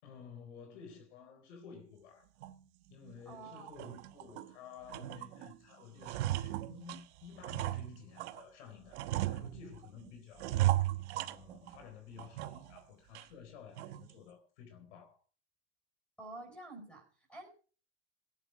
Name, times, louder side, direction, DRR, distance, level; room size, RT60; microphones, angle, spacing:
voice 1, 0.0-2.3 2.9-10.9 11.1-15.2, left 6 dB, 85° left, 4.2 m, -53 dB
sound 1, 2.4-2.6 3.0-3.2 3.6-4.5 4.9-5.5 5.8-8.4 8.9-9.9 10.4-11.8 12.2-12.8 13.1-13.2 13.8-14.1, right 15 dB, 75° right, 1.2 m, -36 dB
voice 2, 3.2-3.7 10.0-10.1 16.2-17.5, right 2 dB, 5° left, 4.7 m, -49 dB
18.0 x 9.9 x 4.7 m
supercardioid pair, 165°, 34 cm